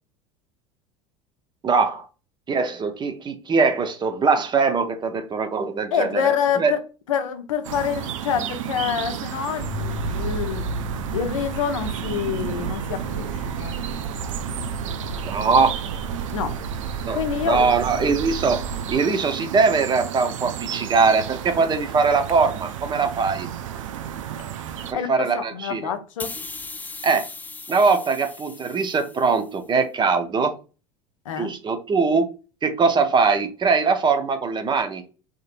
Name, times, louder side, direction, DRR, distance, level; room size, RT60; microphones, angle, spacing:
voice 1, 1.6-2.1 2.5-6.7 15.2-15.8 17.0-18.6 18.9-23.5 24.9-25.9 27.0-27.2 27.7-30.5 31.4-32.3 32.6-35.0, right 4 dB, 25° right, 0.7 m, -21 dB
voice 2, 5.9-6.8 7.1-10.7 11.1-13.3 13.6-13.8 16.3-16.6 17.1-17.7 24.9-26.3 31.3-31.5, left 8 dB, 80° left, 0.6 m, -26 dB
sound 1, 7.6-24.9, right 10 dB, 80° right, 0.4 m, -33 dB
sound 2, 9.6-18.9, right 3 dB, 50° right, 1.4 m, -32 dB
sound 3, 26.2-29.6, left 3 dB, 10° left, 0.3 m, -38 dB
3.7 x 2.7 x 2.4 m
hypercardioid pair, 75°, 16 cm